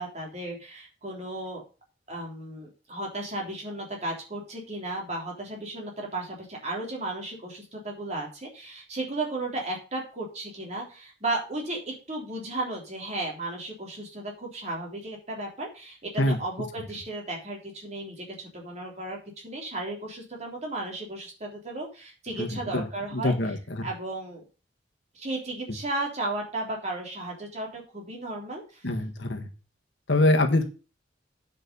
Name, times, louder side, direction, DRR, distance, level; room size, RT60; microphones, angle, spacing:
voice 1, 0.0-1.6 2.1-19.2 19.4-23.5 23.8-24.4 25.1-28.8, right 2 dB, 35° right, 0 dB, 3.4 m, -34 dB
voice 2, 22.4-22.8 23.1-23.9 28.8-29.5 30.1-30.6, left 1 dB, 70° left, 5 dB, 1.5 m, -24 dB
9.6 x 5.5 x 6.8 m, 0.34 s
head